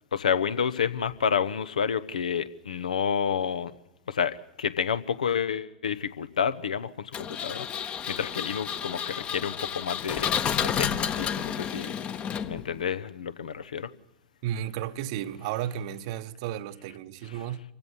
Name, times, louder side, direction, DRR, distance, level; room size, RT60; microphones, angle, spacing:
voice 1, 0.1-3.7 4.1-7.7 8.1-11.9 12.4-13.9 17.3-17.4, left 7 dB, 75° left, 1.1 m, -29 dB
Engine, 7.1-12.8, left 8 dB, 30° left, 1.2 m, -31 dB
voice 2, 14.4-17.6, right 11 dB, 50° right, 1.0 m, -33 dB
26.5 x 16.0 x 8.4 m
figure-of-eight pair, 95°, 4 cm